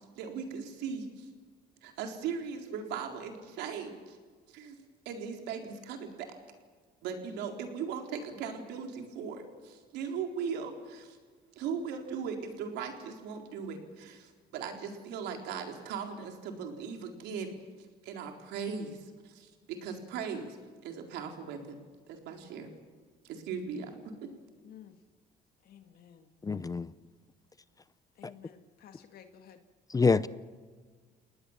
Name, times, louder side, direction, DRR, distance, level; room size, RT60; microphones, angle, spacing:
voice 1, 0.2-1.3 1.8-4.2 4.5-4.8 5.1-6.3 7.0-11.2 11.6-17.5 18.0-20.6 20.8-21.8 22.1-22.7 23.2-24.1, right 6 dB, 90° right, 4.1 m, -38 dB
voice 2, 24.6-25.0 25.6-26.3 28.2-29.6, left 9 dB, 65° left, 2.0 m, -53 dB
voice 3, 26.4-26.9 29.9-30.3, left 4 dB, 20° left, 0.7 m, -25 dB
29.5 x 19.5 x 7.4 m
cardioid pair, 110°, 17 cm